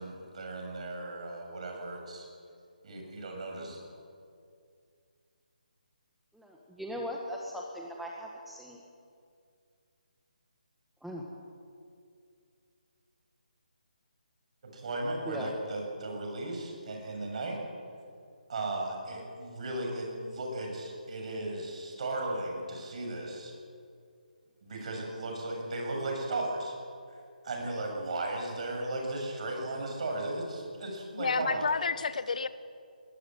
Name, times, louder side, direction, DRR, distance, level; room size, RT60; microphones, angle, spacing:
voice 1, 0.0-2.3 2.8-3.8 14.6-17.6 18.5-23.5 24.6-26.7 27.4-31.7, right 2 dB, 50° right, 1 dB, 7.4 m, -36 dB
voice 2, 6.3-8.8 11.0-11.2 15.2-15.5, equal, ahead, -2 dB, 1.6 m, -39 dB
voice 3, 31.1-32.5, left 5 dB, 55° left, 14 dB, 1.3 m, -30 dB
21.0 x 19.5 x 9.2 m, 2.4 s
figure-of-eight pair, 150°, 5 cm